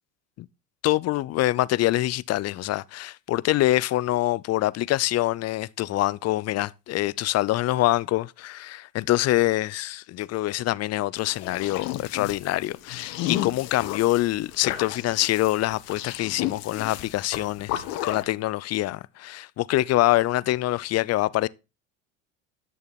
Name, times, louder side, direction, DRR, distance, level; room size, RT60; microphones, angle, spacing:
voice 1, 0.8-21.5, left 16 dB, 45° left, 0.6 m, -25 dB
sound 1, 11.2-18.2, left 13 dB, 65° left, 1.7 m, -33 dB
11.0 x 6.7 x 4.2 m
hypercardioid pair, 85°, 37 cm